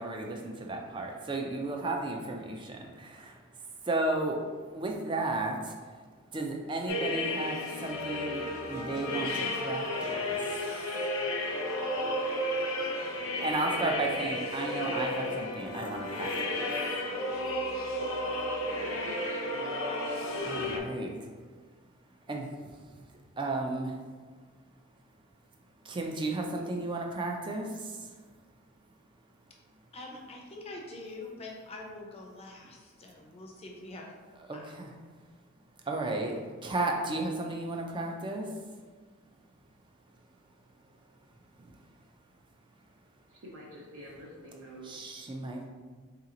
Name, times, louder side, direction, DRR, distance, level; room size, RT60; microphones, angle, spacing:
voice 1, 0.0-3.4 3.8-4.4 4.7-5.8 6.3-10.6 13.4-16.7 20.4-21.2 22.3-22.9 23.4-24.0 25.8-28.1 34.7-34.9 35.9-38.5 41.6-41.7 44.8-45.7, right 2 dB, 20° right, 2 dB, 0.4 m, -34 dB
sound 1, 6.9-20.8, left 1 dB, 70° left, 0.6 m, -33 dB
voice 2, 18.8-19.9 43.3-45.0, right 1 dB, 65° right, -5 dB, 0.7 m, -47 dB
voice 3, 29.9-34.1 34.5-34.9, left 2 dB, 30° left, 0 dB, 0.5 m, -45 dB
3.8 x 2.9 x 3.7 m, 1.5 s
head